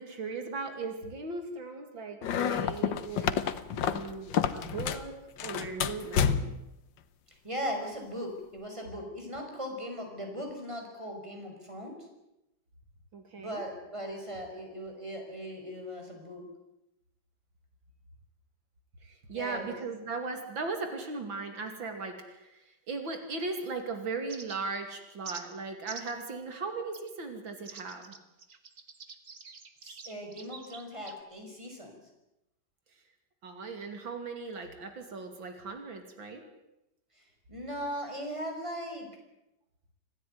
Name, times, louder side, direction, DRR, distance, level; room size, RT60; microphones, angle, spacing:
voice 1, 0.0-3.4 3.8-5.2 5.4-6.4 13.1-13.6 19.0-28.1 33.4-36.4, right 4 dB, 85° right, 6 dB, 3.4 m, -38 dB
sound 1, 2.2-5.1 5.4-6.7, left 8 dB, 75° left, 1.8 m, -29 dB
voice 2, 7.4-11.9 13.4-16.4 19.3-19.8 29.8-32.0 37.2-39.1, equal, 15° right, 2 dB, 5.8 m, -39 dB
sound 2, 24.3-24.8 25.2-25.4 25.9-26.2 26.9-27.1 27.6-31.2, right 5 dB, 45° right, 2.1 m, -46 dB
26.0 x 16.5 x 9.4 m, 0.91 s
omnidirectional pair, 2.1 m